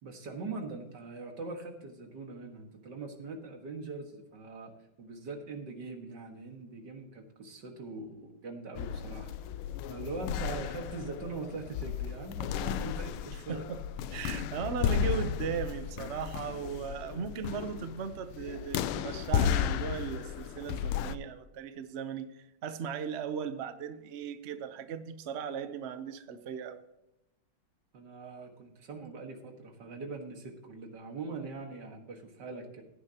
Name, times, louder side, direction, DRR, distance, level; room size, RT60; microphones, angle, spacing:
voice 1, 0.0-4.7 5.0-9.3 9.9-13.7 27.9-32.8, right 3 dB, 55° right, 3 dB, 2.2 m, -42 dB
sound 1, 8.8-21.2, left 9 dB, 85° left, 1.5 m, -34 dB
voice 2, 13.3-13.8 14.1-26.8, right 7 dB, 70° right, 9 dB, 0.6 m, -37 dB
16.0 x 9.9 x 2.9 m, 0.91 s
omnidirectional pair, 2.4 m